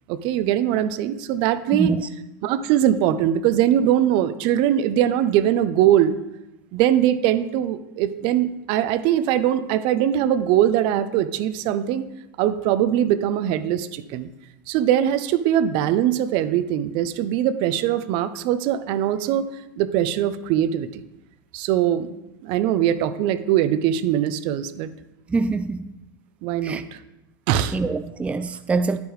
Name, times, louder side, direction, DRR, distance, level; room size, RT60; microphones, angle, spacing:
voice 1, 0.1-1.9 2.4-6.2 6.7-12.0 12.4-14.3 14.7-19.5 19.8-21.0 21.5-22.1 22.4-24.9 26.4-27.0 27.5-27.8, right 11 dB, 50° right, 0.6 m, -21 dB
voice 2, 1.7-2.1 25.3-25.8 26.6-26.8 27.7-29.0, right 3 dB, 10° right, 0.4 m, -24 dB
10.0 x 8.2 x 3.2 m
hypercardioid pair, 100°, 11 cm